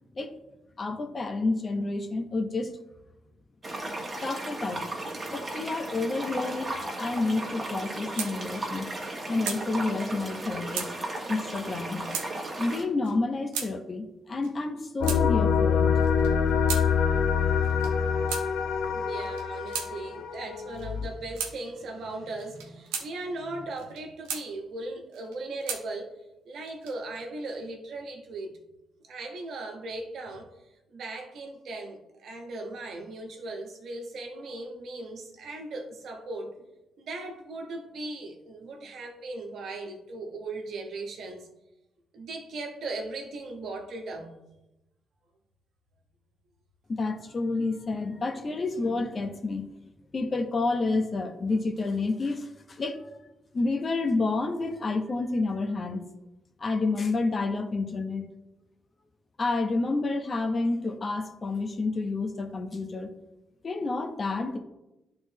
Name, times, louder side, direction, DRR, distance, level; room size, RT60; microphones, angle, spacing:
voice 1, 0.8-2.7 4.2-4.8 5.3-8.9 9.3-10.9 11.3-12.1 12.6-15.9 46.9-49.7 50.1-53.0 53.5-56.1 56.6-58.3 59.4-63.1 63.6-64.6, left 3 dB, 45° left, 5 dB, 1.1 m, -29 dB
sound 1, 3.6-12.8, right 2 dB, 35° right, 1.6 m, -35 dB
sound 2, 7.8-8.3 8.7-8.8 9.0-9.6 10.3-10.4 10.7-10.9 11.7-11.8 12.1-12.3 13.0-13.1 13.5-13.7 14.4-15.2 16.0-16.9 17.6-17.9 18.3-18.5 19.2-19.9 20.8-20.9 21.4-21.5 22.4-23.1 23.8-24.4 25.1-25.8 26.6-27.2, right 7 dB, 85° right, 0.8 m, -35 dB
sound 3, 15.0-21.1, left 6 dB, 70° left, 0.5 m, -25 dB
voice 2, 17.1-17.8 18.9-26.2 26.4-28.6 29.0-30.5 30.9-36.5 37.0-41.5 42.1-44.3, right 2 dB, 70° right, 2 dB, 1.2 m, -38 dB
11.0 x 3.9 x 3.0 m, 0.95 s
hypercardioid pair, 45°, 0 cm